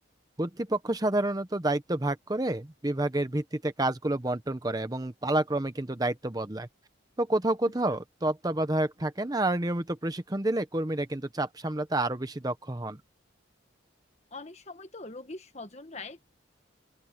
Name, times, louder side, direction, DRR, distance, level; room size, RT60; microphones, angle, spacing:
voice 1, 0.4-6.7 7.2-13.0, right 1 dB, 20° right, 0.8 m, -29 dB
voice 2, 14.3-16.3, left 3 dB, 35° left, 1.6 m, -43 dB
open air
head